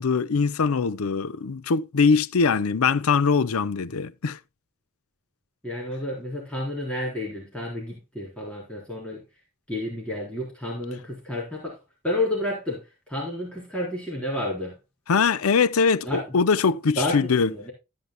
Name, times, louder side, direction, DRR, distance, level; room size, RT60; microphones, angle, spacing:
voice 1, 0.0-4.4 15.1-17.5, left 5 dB, 90° left, 0.6 m, -22 dB
voice 2, 5.6-9.2 9.7-11.8 12.0-14.8 16.0-16.2 17.0-17.7, left 1 dB, 5° left, 3.9 m, -30 dB
13.0 x 9.5 x 2.2 m
head